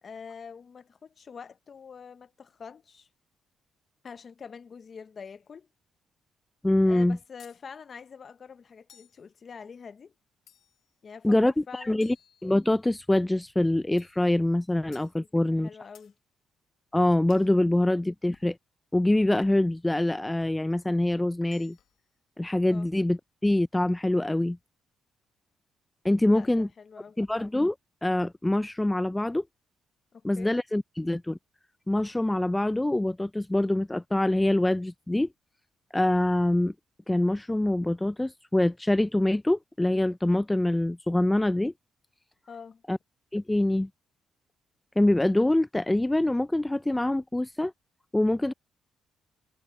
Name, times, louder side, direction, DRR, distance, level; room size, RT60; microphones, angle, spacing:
voice 1, 0.0-3.1 4.0-5.7 6.9-10.1 11.0-12.1 15.2-16.1 22.7-22.9 26.3-27.2 30.1-30.5 42.5-42.8, left 6 dB, 45° left, 0.9 m, -45 dB
voice 2, 6.6-7.2 11.2-12.2 12.4-15.7 16.9-18.6 18.9-21.8 22.4-24.6 26.0-26.7 27.2-27.8 28.0-29.4 30.2-31.4 31.9-35.3 35.9-36.7 37.1-41.7 42.9-43.0 43.3-43.9 45.0-47.7 48.1-48.5, left 1 dB, 10° left, 0.4 m, -25 dB
sound 1, 7.4-7.6 8.9-9.2 10.5-10.9 12.0-12.9 14.0-14.3 14.9-15.2 15.9-16.2 17.3-17.5 18.3-18.6 19.4-19.7 20.4-20.6 21.4-22.0, left 9 dB, 70° left, 1.4 m, -58 dB
cardioid pair, 90°, 0 cm